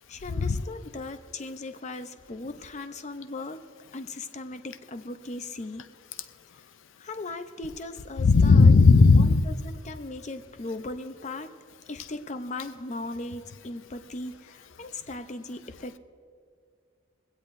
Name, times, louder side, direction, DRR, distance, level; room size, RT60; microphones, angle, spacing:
voice 1, 0.1-3.6 3.9-5.9 7.0-8.7 9.1-11.5 11.9-16.0, left 2 dB, 35° left, 9 dB, 0.6 m, -38 dB
voice 2, 8.2-9.4, left 4 dB, 80° left, 11 dB, 0.5 m, -16 dB
22.0 x 16.5 x 2.6 m, 2.2 s
head